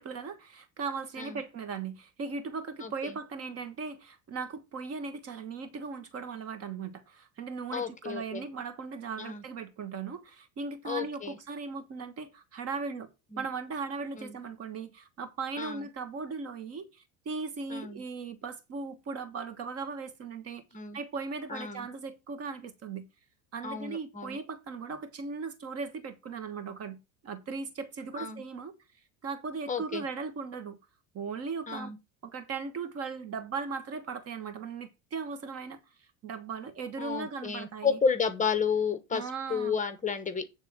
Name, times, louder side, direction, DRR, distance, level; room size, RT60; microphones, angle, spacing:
voice 1, 0.0-13.1 13.4-20.6 20.9-23.1 23.5-28.7 29.2-30.8 31.1-31.9 32.2-35.8 36.2-38.0 39.1-39.8, right 5 dB, 40° right, 1.4 m, -38 dB
voice 2, 2.8-3.2 7.7-8.4 9.2-9.4 10.8-11.4 13.3-13.4 14.2-14.4 15.6-15.9 17.7-18.0 20.7-21.0 21.5-21.9 23.6-24.4 28.1-28.4 29.7-30.0 31.7-32.0 37.0-40.4, left 6 dB, 20° left, 1.0 m, -32 dB
9.6 x 3.7 x 6.1 m
supercardioid pair, 120°, 38 cm